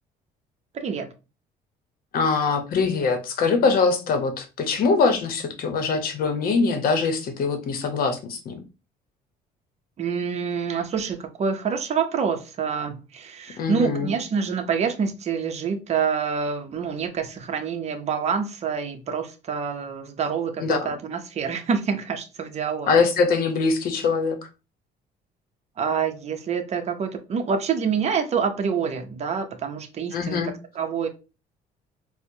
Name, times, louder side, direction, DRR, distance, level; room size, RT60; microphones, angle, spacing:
voice 1, 0.7-1.1 10.0-23.0 25.8-30.4 30.7-31.1, right 6 dB, 40° right, 0.6 m, -27 dB
voice 2, 2.1-8.6 13.6-14.1 20.6-20.9 22.9-24.4 30.1-30.5, left 4 dB, 60° left, 0.8 m, -23 dB
4.3 x 2.1 x 2.6 m
cardioid pair, 110°, 17 cm